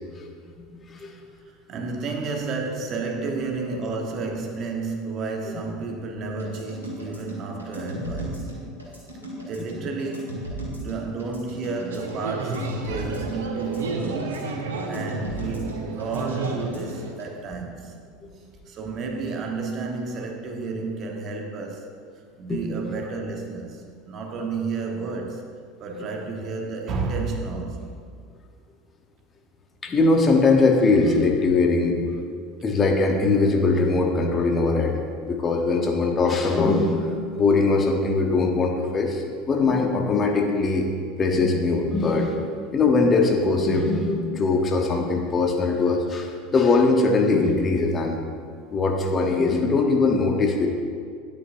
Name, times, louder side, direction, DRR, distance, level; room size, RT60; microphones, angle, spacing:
voice 1, 1.5-8.5 9.4-14.3 14.9-17.9 18.7-21.9 22.4-25.4 25.8-28.0, right 4 dB, 40° right, 2 dB, 1.3 m, -31 dB
sound 1, 6.4-17.3, right 1 dB, 90° left, 2.3 m, -35 dB
sound 2, 11.9-17.1, right 3 dB, 70° right, 0.9 m, -32 dB
voice 2, 29.8-32.1 32.6-35.0 35.2-40.9 41.2-48.2 48.7-50.7, left 3 dB, 25° left, 2 dB, 1.1 m, -21 dB
11.0 x 8.7 x 2.7 m, 2.2 s
figure-of-eight pair, 75°, 0 cm